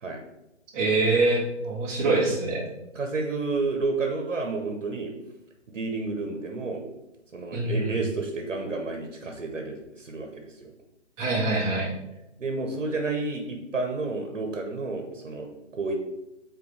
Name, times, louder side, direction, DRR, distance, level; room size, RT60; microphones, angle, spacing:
voice 1, 0.7-2.6 7.5-8.0 11.2-11.9, right 2 dB, 20° right, -4 dB, 1.6 m, -24 dB
voice 2, 2.9-5.1 5.7-6.8 7.3-10.7 12.4-15.9, right 3 dB, 75° right, 3 dB, 1.2 m, -30 dB
7.0 x 4.3 x 3.3 m, 0.92 s
figure-of-eight pair, 145°, 37 cm